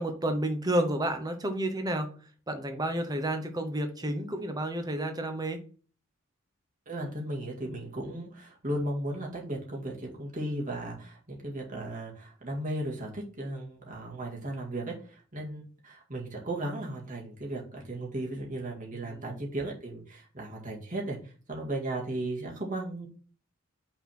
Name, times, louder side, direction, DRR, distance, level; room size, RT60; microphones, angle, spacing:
voice 1, 0.0-2.1 2.5-5.6 18.9-19.4, right 1 dB, 20° right, 6 dB, 0.9 m, -31 dB
voice 2, 6.9-21.2 21.5-23.1, right 1 dB, 35° right, -1 dB, 2.0 m, -36 dB
5.9 x 4.1 x 6.0 m, 0.40 s
head